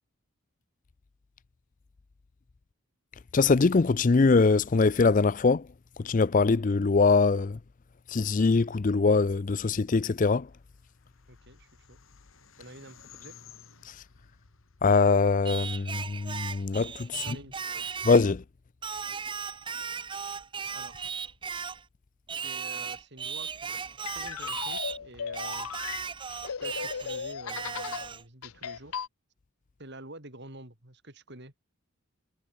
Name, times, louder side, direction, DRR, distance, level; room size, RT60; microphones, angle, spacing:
voice 1, 3.3-5.6 6.0-7.6 8.1-10.5 14.8-17.2 18.1-18.4, left 4 dB, 35° left, 0.4 m, -23 dB
sound 1, 10.4-15.8, left 7 dB, 65° left, 5.1 m, -56 dB
voice 2, 11.3-12.0 12.6-13.4 17.1-17.9 20.7-21.1 22.4-25.7 26.6-29.0 29.8-31.5, right 2 dB, 50° right, 3.9 m, -48 dB
Singing, 15.5-18.3 18.8-21.8 22.3-25.0 25.3-28.2, right 6 dB, 20° right, 0.7 m, -36 dB
sound 2, 23.7-28.1 28.4-29.1, left 7 dB, 80° left, 0.7 m, -36 dB
head